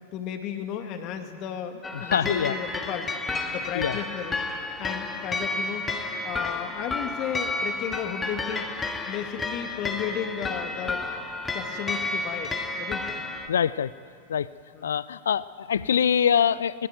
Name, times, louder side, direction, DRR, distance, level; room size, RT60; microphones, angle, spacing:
voice 1, 0.1-3.2 3.5-4.4 4.8-5.9 6.2-8.7 9.1-11.0 11.5-13.2 14.7-14.9, left 9 dB, 40° left, 6 dB, 2.2 m, -34 dB
sound 1, 1.8-13.5, left 3 dB, 15° left, 1.7 m, -31 dB
voice 2, 1.9-2.5 3.8-4.0 13.5-13.9 14.3-14.5 14.8-16.9, left 8 dB, 65° left, 19 dB, 0.5 m, -24 dB
20.0 x 19.0 x 9.1 m, 2.3 s
figure-of-eight pair, 90°, 0 cm